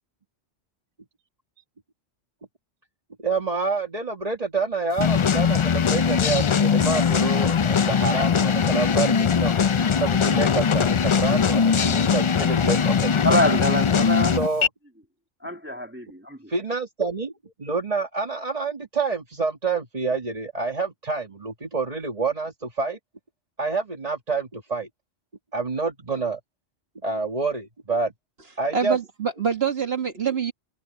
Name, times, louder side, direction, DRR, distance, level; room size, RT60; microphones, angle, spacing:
voice 1, 3.2-9.5 10.0-13.3 14.3-14.7 16.5-17.3 17.6-23.0 23.6-24.9 25.5-26.4 27.0-28.1 28.6-29.0, right 4 dB, 35° right, 1.9 m, -27 dB
sound 1, 5.0-14.7, left 6 dB, 55° left, 0.3 m, -21 dB
voice 2, 13.2-14.4 15.4-16.5, left 1 dB, 10° right, 2.4 m, -25 dB
voice 3, 28.7-30.5, right 7 dB, 55° right, 1.8 m, -25 dB
omnidirectional pair, 1.2 m